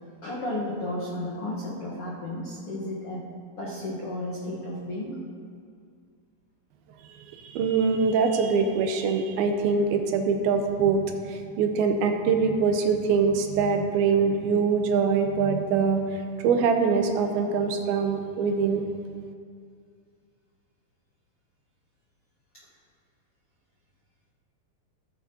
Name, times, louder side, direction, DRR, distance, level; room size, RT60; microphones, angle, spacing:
voice 1, 0.2-3.2 3.6-5.2, left 1 dB, 65° left, -7 dB, 1.4 m, -33 dB
voice 2, 7.2-18.8, right 5 dB, 80° right, 5 dB, 2.5 m, -24 dB
14.0 x 9.1 x 2.8 m, 2.2 s
omnidirectional pair, 4.5 m